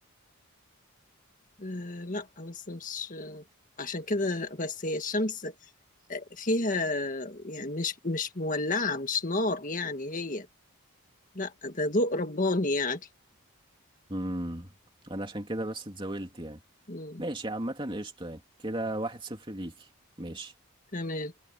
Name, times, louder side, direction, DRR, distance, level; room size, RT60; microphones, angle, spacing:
voice 1, 1.6-3.4 3.8-5.5 6.1-10.5 11.4-13.0 16.9-17.2 20.9-21.3, left 2 dB, 35° left, 1.8 m, -31 dB
voice 2, 14.1-14.7 15.0-16.6 17.2-19.9 20.2-20.5, right 1 dB, 20° right, 2.9 m, -35 dB
head